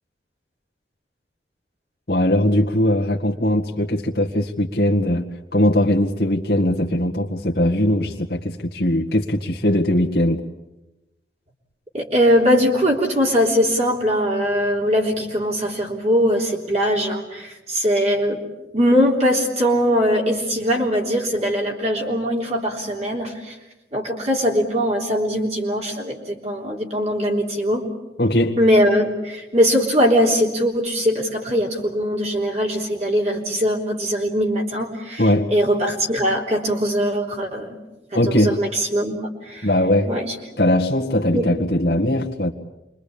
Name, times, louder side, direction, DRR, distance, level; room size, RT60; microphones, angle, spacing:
voice 1, 2.1-5.2 5.5-10.4 28.2-28.6 35.2-35.5 38.1-38.6 39.6-40.1 40.6-42.5, left 1 dB, 60° left, 1.9 m, -20 dB
voice 2, 11.9-18.4 18.7-23.5 23.9-27.8 28.6-35.2 35.5-37.7 38.3-39.7 40.1-40.3 41.3-41.5, equal, 35° right, 3.5 m, -21 dB
27.5 x 23.5 x 8.7 m
head